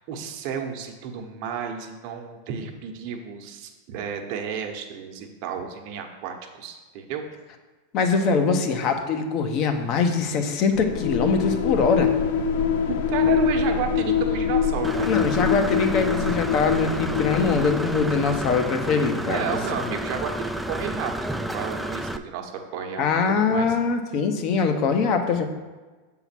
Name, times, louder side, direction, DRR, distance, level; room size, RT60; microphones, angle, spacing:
voice 1, 0.1-7.2 12.9-15.1 19.3-23.0 23.4-23.8, right 7 dB, 55° right, 3 dB, 1.0 m, -32 dB
voice 2, 7.9-12.1 15.1-19.6 23.0-25.5, left 5 dB, 45° left, 6 dB, 0.9 m, -23 dB
sound 1, 10.7-18.5, left 7 dB, 70° left, 0.6 m, -24 dB
Engine / Mechanisms, 14.8-22.2, right 1 dB, 5° right, 0.4 m, -31 dB
7.1 x 3.9 x 6.0 m, 1.3 s
hypercardioid pair, 105°, 0 cm